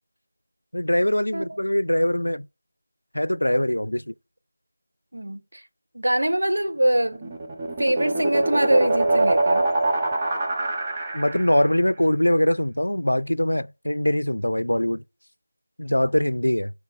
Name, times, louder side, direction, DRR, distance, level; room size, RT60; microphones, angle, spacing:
voice 1, 0.7-2.5 3.1-4.1 11.1-15.0 15.8-16.7, left 1 dB, 90° left, 0.4 m, -22 dB
voice 2, 5.1-5.6 5.9-7.3 7.8-9.7, right 1 dB, 80° right, 1.0 m, -23 dB
sound 1, 6.9-11.7, right 2 dB, 20° right, 1.0 m, -24 dB
6.0 x 5.7 x 4.3 m
figure-of-eight pair, 165°, 0 cm